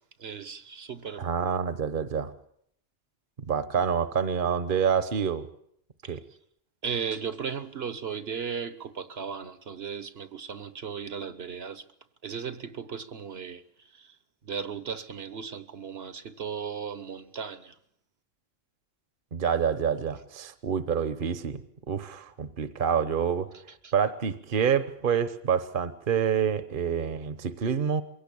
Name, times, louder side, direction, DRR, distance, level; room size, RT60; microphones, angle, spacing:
voice 1, 0.2-1.3 6.0-6.2 6.8-11.8 12.2-14.2 14.4-17.7 23.8-23.9, right 6 dB, 75° right, 1.4 m, -36 dB
voice 2, 1.2-2.3 3.5-5.5 6.1-6.2 19.3-21.6 21.9-23.5 23.9-28.0, right 7 dB, 55° right, 1.2 m, -27 dB
22.5 x 17.0 x 8.6 m
omnidirectional pair, 1.1 m